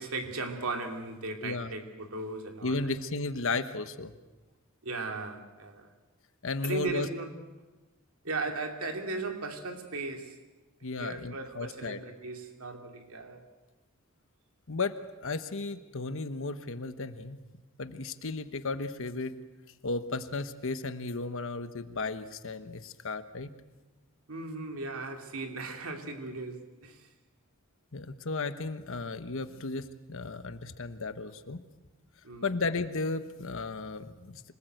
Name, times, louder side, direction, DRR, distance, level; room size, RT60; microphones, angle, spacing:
voice 1, 0.0-2.9 4.8-5.9 6.6-7.3 8.2-10.4 11.0-13.4 24.3-27.1 32.2-32.5, right 3 dB, 75° right, 2.7 m, -37 dB
voice 2, 1.4-1.7 2.6-4.1 6.4-7.1 10.8-12.0 14.7-14.9 15.2-17.4 17.8-19.3 19.8-23.5 27.9-31.6 32.4-34.4, left 3 dB, 65° left, 1.2 m, -34 dB
26.0 x 19.5 x 8.0 m
head